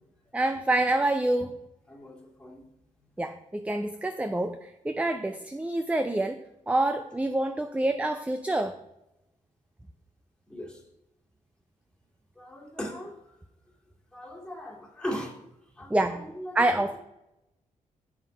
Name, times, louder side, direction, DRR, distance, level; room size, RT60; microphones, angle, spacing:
voice 1, 0.3-1.6 3.2-4.6 4.8-8.7 15.9-16.2 16.6-17.0, right 2 dB, 10° right, 8 dB, 0.5 m, -27 dB
voice 2, 1.9-2.6 10.5-10.8 12.4-13.2 14.1-15.3 15.8-17.0, equal, 5° left, -2 dB, 2.2 m, -39 dB
7.4 x 5.7 x 5.1 m, 0.88 s
cardioid pair, 85°, 14 cm